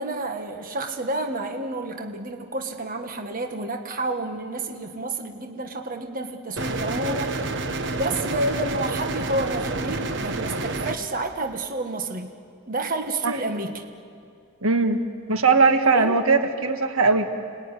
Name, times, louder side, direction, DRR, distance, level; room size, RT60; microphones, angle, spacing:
voice 1, 0.0-7.6 7.9-12.3 12.7-13.8 15.9-16.2, right 2 dB, 40° right, 4 dB, 1.5 m, -30 dB
sound 1, 6.6-11.0, right 2 dB, 55° right, 1.4 m, -29 dB
voice 2, 14.6-15.0 15.3-17.3, right 4 dB, 80° right, 6 dB, 1.7 m, -19 dB
29.5 x 20.0 x 9.9 m, 2.3 s
head